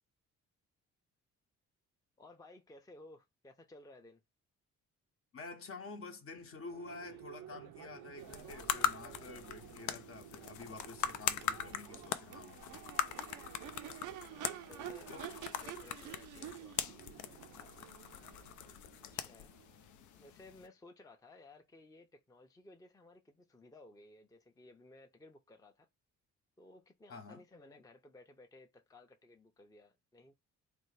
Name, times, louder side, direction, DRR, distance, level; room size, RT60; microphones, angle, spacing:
voice 1, 2.2-4.2 14.2-17.1 17.5-17.7 19.1-19.5 20.1-25.9 26.6-30.3, left 2 dB, 10° left, 0.5 m, -58 dB
voice 2, 5.3-12.7 15.1-15.2 27.1-27.4, left 3 dB, 45° left, 0.8 m, -49 dB
Crowd / Race car auto racing / Accelerating revving vroom, 6.5-20.3, right 11 dB, 90° right, 0.6 m, -50 dB
sound 1, 8.2-20.7, left 10 dB, 75° left, 0.5 m, -41 dB
3.4 x 2.4 x 3.2 m
cardioid pair, 90°, 30 cm